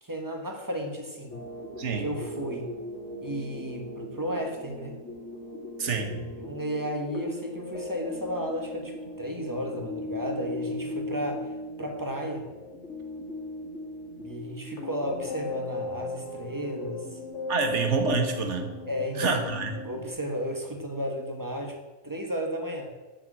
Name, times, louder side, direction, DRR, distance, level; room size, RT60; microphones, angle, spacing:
voice 1, 0.0-1.4 2.0-2.7 3.2-5.0 6.3-11.5 11.8-12.4 14.2-17.1 18.9-19.4 19.8-21.8 22.0-22.9, equal, 15° right, 3 dB, 1.5 m, -33 dB
sound 1, 1.3-20.1, left 1 dB, 70° left, 2.0 m, -38 dB
voice 2, 1.8-2.1 5.8-6.3 17.5-18.7 19.2-19.7, right 4 dB, 65° right, 5 dB, 1.6 m, -27 dB
7.6 x 7.3 x 7.6 m, 1.2 s
omnidirectional pair, 1.3 m